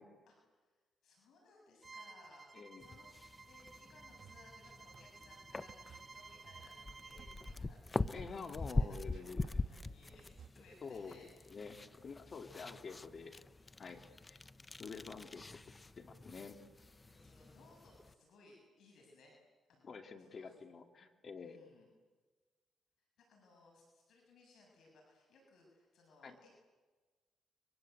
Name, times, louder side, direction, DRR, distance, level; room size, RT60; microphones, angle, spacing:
voice 1, 0.3-3.1 3.4-11.3 12.4-12.7 17.0-19.4 19.7-20.5 21.4-21.9 23.2-26.5, left 2 dB, 70° left, 0 dB, 7.1 m, -64 dB
Bowed string instrument, 1.8-7.6, right 4 dB, 30° right, 0.9 m, -55 dB
voice 2, 2.5-2.8 8.1-9.6 10.8-11.2 11.5-13.4 13.8-14.4 14.8-15.4 16.0-16.6 19.8-21.6 26.2-26.4, left 5 dB, 45° left, 5 dB, 3.0 m, -48 dB
sound 1, 2.8-18.1, left 3 dB, 20° left, 0.8 m, -44 dB
sound 2, 3.8-10.5, right 8 dB, 65° right, 1.2 m, -61 dB
29.5 x 24.0 x 8.1 m, 1.3 s
cardioid pair, 90°, 0 cm